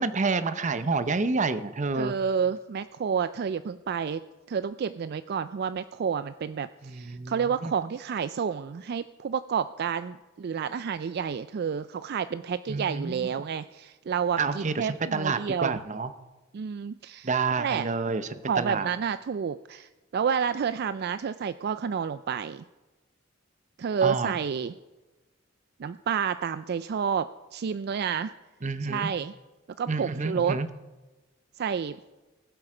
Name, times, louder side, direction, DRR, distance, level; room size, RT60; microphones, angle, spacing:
voice 1, 0.0-2.1 6.8-7.7 12.7-13.3 14.4-16.1 17.2-18.3 18.6-18.9 24.0-24.3 28.6-29.1 29.9-30.7, right 4 dB, 40° right, 12 dB, 0.7 m, -28 dB
voice 2, 1.9-4.2 4.5-15.8 16.5-17.9 18.5-22.6 23.8-24.7 25.8-28.3 28.8-29.3 29.8-30.6 31.6-32.0, right 7 dB, 55° right, 13 dB, 0.3 m, -30 dB
19.5 x 7.9 x 5.0 m, 1.2 s
head